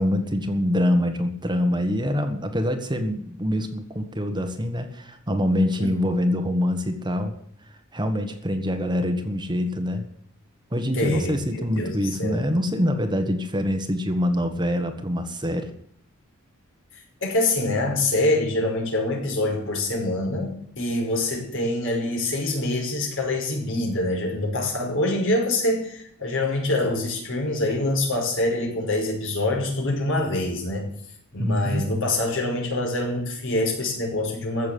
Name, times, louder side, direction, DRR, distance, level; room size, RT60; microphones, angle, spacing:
voice 1, 0.0-7.3 7.9-10.0 10.7-15.7 31.4-31.9, left 1 dB, 20° right, 6 dB, 1.5 m, -25 dB
voice 2, 10.9-12.4 17.2-30.9 31.3-34.7, left 2 dB, 65° left, 1 dB, 5.5 m, -25 dB
15.0 x 7.2 x 9.4 m, 0.67 s
head